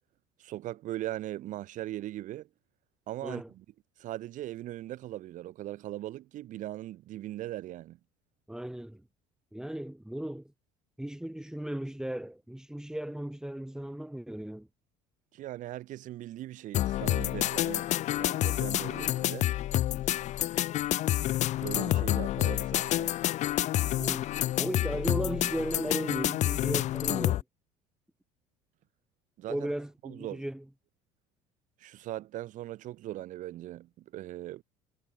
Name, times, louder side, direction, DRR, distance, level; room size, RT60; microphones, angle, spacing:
voice 1, 0.4-2.5 3.1-3.6 4.0-8.0 15.3-17.9 18.2-19.5 21.6-23.2 29.4-29.7 30.0-30.4 31.8-34.6, right 14 dB, 55° right, 1.1 m, -39 dB
voice 2, 8.5-9.0 9.5-10.4 11.0-14.7 24.0-24.3 24.6-27.4 29.5-30.6, right 1 dB, 5° right, 2.1 m, -36 dB
sound 1, 16.7-27.4, left 14 dB, 50° left, 0.5 m, -28 dB
hypercardioid pair, 70°, 16 cm